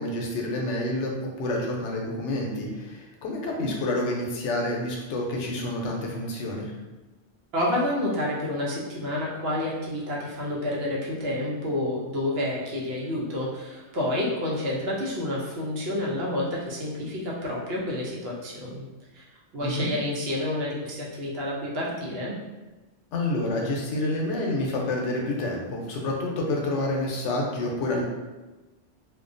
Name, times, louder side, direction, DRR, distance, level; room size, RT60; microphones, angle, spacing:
voice 1, 0.0-6.7 19.6-19.9 23.1-28.0, left 1 dB, 85° left, -1 dB, 0.9 m, -28 dB
voice 2, 7.5-18.9 19.1-19.2 19.5-22.4, left 1 dB, 65° right, -4 dB, 0.8 m, -29 dB
2.3 x 2.1 x 2.5 m, 1.1 s
omnidirectional pair, 1.2 m